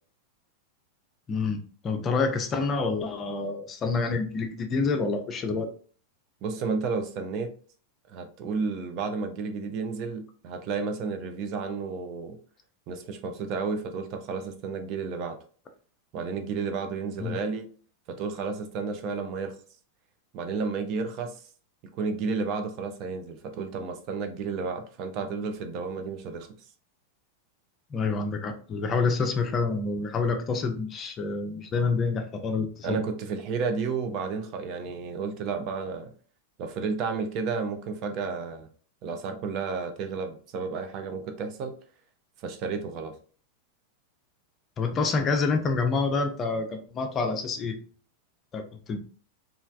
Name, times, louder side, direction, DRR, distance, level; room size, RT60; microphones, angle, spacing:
voice 1, 1.3-5.7 17.2-17.4 27.9-33.0 44.8-47.8 48.5-48.6 48.9-49.0, left 4 dB, 25° left, 5 dB, 0.5 m, -27 dB
voice 2, 6.4-7.5 8.1-12.4 12.9-15.4 16.1-17.7 18.1-19.5 20.3-21.4 21.9-26.5 32.8-36.1 36.6-38.7 39.0-41.7 42.4-43.2, right 4 dB, 40° right, 7 dB, 0.4 m, -32 dB
3.1 x 2.3 x 2.4 m, 0.42 s
figure-of-eight pair, 90°, 0 cm